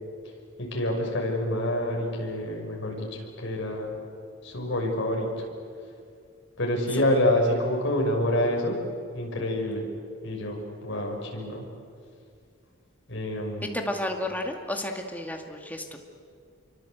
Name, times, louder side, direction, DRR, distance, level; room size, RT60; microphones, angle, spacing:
voice 1, 0.2-3.9 4.4-5.5 6.6-8.8 9.1-9.9 10.2-11.7 13.1-13.8, left 1 dB, 60° left, 0 dB, 6.2 m, -27 dB
voice 2, 13.7-16.0, left 1 dB, 10° left, 3 dB, 2.2 m, -32 dB
28.0 x 24.0 x 8.2 m, 2.2 s
head